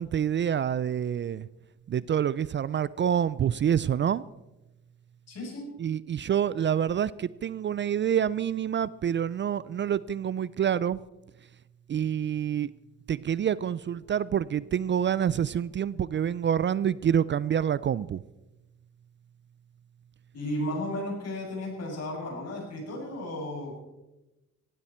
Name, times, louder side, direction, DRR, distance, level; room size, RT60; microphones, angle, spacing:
voice 1, 0.0-1.5 1.9-4.2 5.8-11.0 11.9-12.7 13.1-18.2, right 9 dB, 40° right, 19 dB, 0.4 m, -27 dB
voice 2, 5.3-5.7 20.3-23.8, left 1 dB, 55° left, -1 dB, 7.9 m, -34 dB
18.0 x 16.0 x 4.4 m, 1.0 s
cardioid pair, 90°, 30 cm